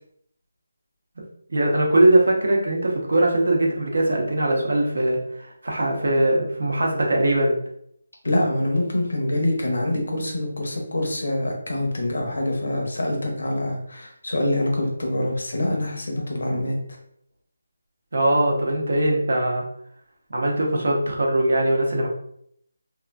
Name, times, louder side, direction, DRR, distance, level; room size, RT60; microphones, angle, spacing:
voice 1, 1.5-7.6 18.1-19.6 20.3-22.1, right 1 dB, 65° right, -1 dB, 0.8 m, -21 dB
voice 2, 8.2-16.8, left 1 dB, 80° left, 1 dB, 0.9 m, -25 dB
2.8 x 2.5 x 2.3 m, 0.69 s
figure-of-eight pair, 175°, 0 cm